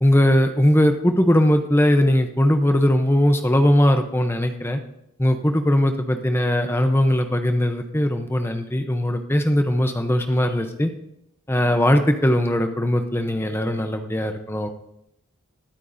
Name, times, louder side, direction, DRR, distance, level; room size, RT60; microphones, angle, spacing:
voice 1, 0.0-4.8 5.2-10.9 11.5-14.7, left 1 dB, 10° left, 6 dB, 0.7 m, -19 dB
21.0 x 9.1 x 2.7 m, 0.80 s
head